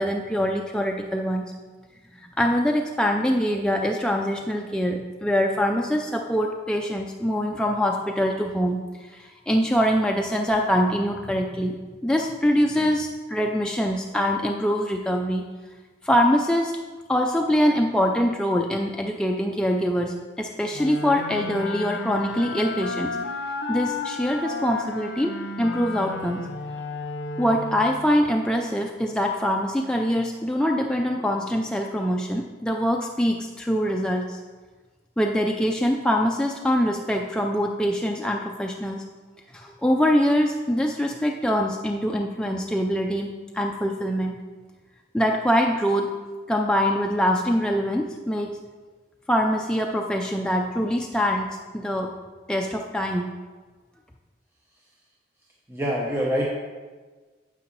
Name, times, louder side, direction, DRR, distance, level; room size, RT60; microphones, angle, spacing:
voice 1, 0.0-1.4 2.1-11.8 12.0-15.4 16.0-16.8 17.1-23.2 23.7-26.4 27.4-34.4 35.2-39.0 39.5-44.3 45.1-46.1 46.5-48.5 49.3-52.1 52.5-53.3, equal, 5° left, 1 dB, 0.3 m, -24 dB
sound 1, 20.7-28.2, left 3 dB, 80° left, 0.7 m, -33 dB
voice 2, 55.7-56.5, equal, 15° right, -4 dB, 0.7 m, -25 dB
9.6 x 7.3 x 3.1 m, 1.4 s
head